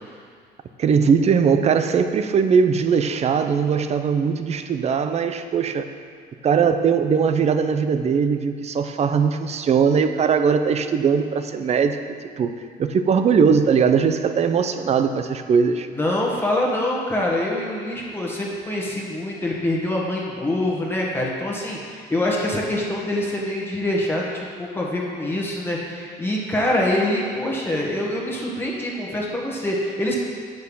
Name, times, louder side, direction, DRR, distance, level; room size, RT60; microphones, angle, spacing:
voice 1, 0.8-5.9 6.4-12.0 12.4-12.5 12.8-15.9, right 6 dB, 40° right, 9 dB, 0.6 m, -20 dB
voice 2, 15.9-30.1, left 1 dB, 15° left, -4 dB, 1.5 m, -25 dB
8.1 x 6.6 x 5.5 m, 2.1 s
cardioid pair, 110°, 17 cm